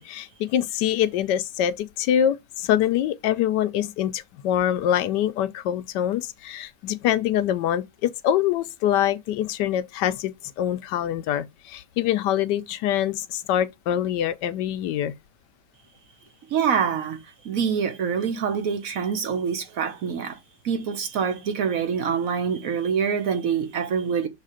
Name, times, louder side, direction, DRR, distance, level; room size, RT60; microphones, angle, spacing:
voice 1, 0.0-10.3 10.6-15.1, left 10 dB, 80° left, 1.2 m, -24 dB
voice 2, 16.5-17.2 17.4-20.4 20.6-24.3, right 7 dB, 60° right, 1.1 m, -25 dB
6.6 x 3.2 x 4.9 m
omnidirectional pair, 1.8 m